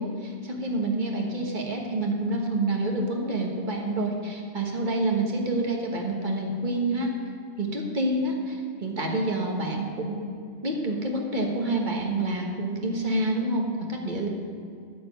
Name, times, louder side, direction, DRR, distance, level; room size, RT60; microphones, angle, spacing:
voice 1, 0.0-7.1 7.6-10.2 10.6-14.3, right 2 dB, 45° right, 1 dB, 1.5 m, -28 dB
9.4 x 6.1 x 8.2 m, 2.4 s
omnidirectional pair, 1.1 m